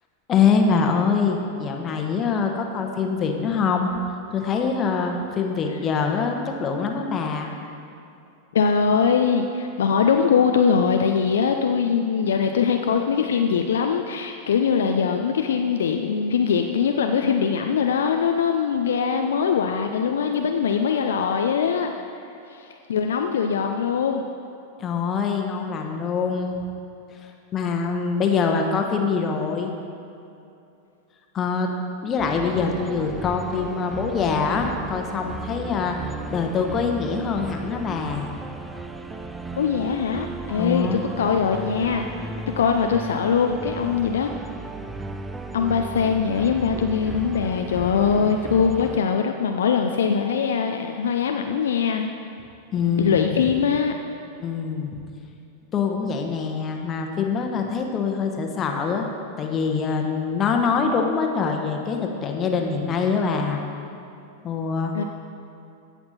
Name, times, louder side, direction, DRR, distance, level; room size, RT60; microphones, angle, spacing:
voice 1, 0.3-7.5 24.8-26.6 27.1-29.7 31.3-31.7 32.0-36.0 36.3-38.3 40.6-41.0 52.7-53.3 54.4-54.9 55.7-59.1 59.4-63.6 64.4-64.9, left 5 dB, 25° left, 3 dB, 1.1 m, -24 dB
voice 2, 8.5-21.9 22.5-24.2 39.6-42.1 42.6-44.3 45.5-52.1 53.0-53.9 64.9-65.0, left 6 dB, 65° left, 4 dB, 0.5 m, -22 dB
sound 1, 32.2-49.0, right 2 dB, 10° right, 0.5 m, -35 dB
16.0 x 6.0 x 4.2 m, 2.7 s
figure-of-eight pair, 90°, 0 cm